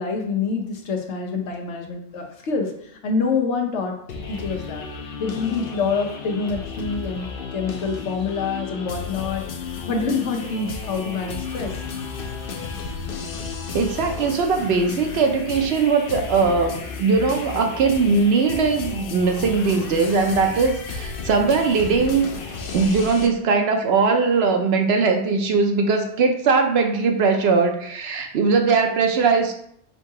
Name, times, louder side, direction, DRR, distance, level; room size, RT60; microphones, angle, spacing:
voice 1, 0.0-4.0 4.3-4.8 5.2-11.7, left 4 dB, 90° left, 2 dB, 1.1 m, -26 dB
sound 1, 4.1-23.3, left 5 dB, 60° left, 0.7 m, -33 dB
voice 2, 13.7-22.3 22.7-29.6, right 4 dB, 70° right, 4 dB, 0.8 m, -20 dB
3.8 x 2.7 x 4.6 m, 0.69 s
omnidirectional pair, 1.2 m